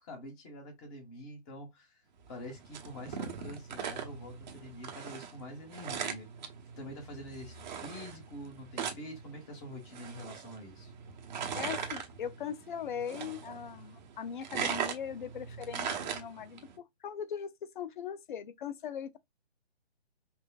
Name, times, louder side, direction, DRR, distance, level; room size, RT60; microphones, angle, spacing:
voice 1, 0.0-2.0 2.3-6.3 6.8-10.9, equal, 25° left, 1.6 m, -46 dB
sound 1, 2.3-16.7, right 7 dB, 45° right, 1.1 m, -40 dB
voice 2, 11.5-19.2, left 8 dB, 45° left, 0.7 m, -40 dB
5.6 x 2.5 x 2.3 m
hypercardioid pair, 145°, 33 cm